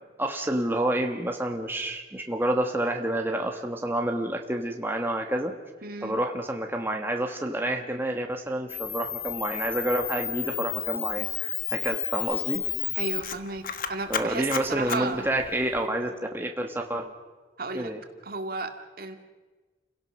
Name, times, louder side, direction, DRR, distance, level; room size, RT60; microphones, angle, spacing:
voice 1, 0.0-5.5 6.0-12.6 14.1-17.1 17.7-18.0, right 1 dB, 15° right, 3 dB, 1.5 m, -29 dB
voice 2, 5.8-6.2 12.9-13.6 13.9-15.2 17.6-17.9 18.2-19.2, right 3 dB, 55° right, 5 dB, 2.2 m, -33 dB
Camera, 8.7-15.8, left 11 dB, 55° left, 1.3 m, -32 dB
29.5 x 17.0 x 6.5 m, 1.3 s
head